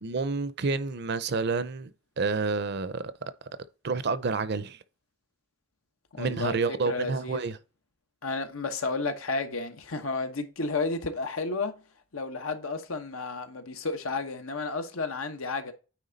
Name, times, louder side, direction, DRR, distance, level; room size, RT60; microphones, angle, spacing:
voice 1, 0.0-1.9 2.2-3.1 3.8-4.8 6.2-7.6, right 4 dB, 55° right, 0.6 m, -29 dB
voice 2, 6.1-7.4 8.2-11.8 12.1-15.7, left 3 dB, 90° left, 1.1 m, -32 dB
9.2 x 3.5 x 4.0 m
head